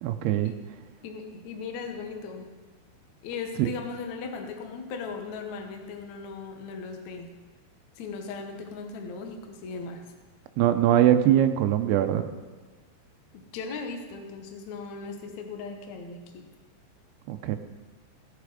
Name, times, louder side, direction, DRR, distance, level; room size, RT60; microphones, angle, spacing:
voice 1, 0.0-0.5 3.6-3.7 10.6-12.3 17.3-17.6, right 11 dB, 85° right, 7 dB, 2.2 m, -22 dB
voice 2, 1.0-2.5 3.2-7.3 7.9-10.0 13.3-16.5, left 4 dB, 90° left, 4 dB, 1.6 m, -38 dB
17.0 x 8.3 x 5.0 m, 1.3 s
omnidirectional pair, 5.3 m